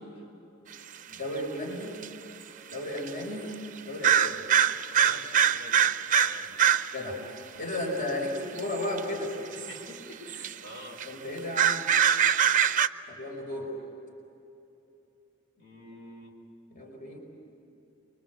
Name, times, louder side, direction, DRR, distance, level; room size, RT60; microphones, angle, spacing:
voice 1, 1.1-2.0 2.7-3.5 3.9-4.5 6.9-7.2 7.5-9.4 11.1-11.8 13.1-13.7 16.7-17.2, left 1 dB, 45° left, 1 dB, 5.1 m, -34 dB
sound 1, 1.1-1.2 2.0-2.1 3.0-3.1 4.0-7.0 8.6-9.0 9.6-9.8 10.1-10.5 11.0-11.1 11.4-12.9, right 8 dB, 40° right, 0.6 m, -23 dB
voice 2, 4.9-5.9 6.2-6.6 9.5-11.6 15.5-16.3, left 1 dB, 60° left, 0 dB, 5.3 m, -47 dB
29.0 x 24.0 x 8.3 m, 2.9 s
head